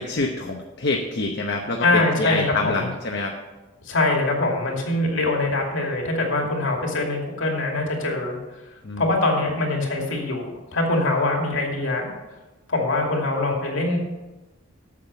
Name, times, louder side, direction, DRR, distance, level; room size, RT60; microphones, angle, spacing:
voice 1, 0.0-3.3 8.8-9.1, left 3 dB, 50° left, 1 dB, 0.9 m, -26 dB
voice 2, 1.8-2.9 3.8-8.4 9.0-12.1 12.7-14.0, left 2 dB, 65° left, 0 dB, 2.6 m, -23 dB
8.5 x 7.6 x 6.8 m, 1.1 s
head